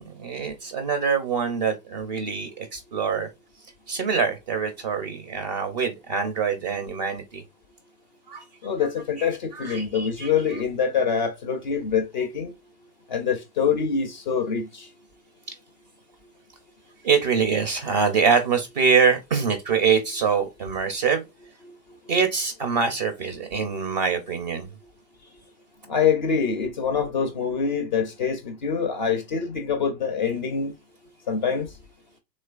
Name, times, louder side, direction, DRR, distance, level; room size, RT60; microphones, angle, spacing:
voice 1, 0.0-3.3 3.9-7.4 8.3-8.5 9.2-10.3 17.0-21.2 22.1-24.7, right 6 dB, 30° right, 0.4 m, -24 dB
voice 2, 8.6-12.5 13.1-14.9 25.9-30.7 31.3-31.7, left 6 dB, 30° left, 0.4 m, -25 dB
3.1 x 3.1 x 2.3 m
hypercardioid pair, 120°, 49 cm